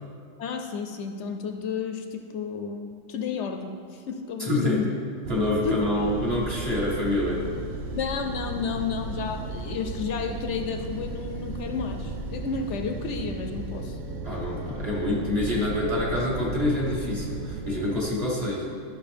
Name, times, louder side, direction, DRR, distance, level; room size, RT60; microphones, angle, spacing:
voice 1, 0.4-4.9 5.6-6.1 7.9-14.0, left 5 dB, 70° left, 6 dB, 0.9 m, -32 dB
voice 2, 4.4-4.9 5.3-7.5 14.2-18.7, left 1 dB, 30° right, -5 dB, 1.7 m, -26 dB
sound 1, 5.2-18.0, right 2 dB, 85° right, 1.1 m, -35 dB
12.0 x 6.1 x 3.5 m, 2.3 s
omnidirectional pair, 1.3 m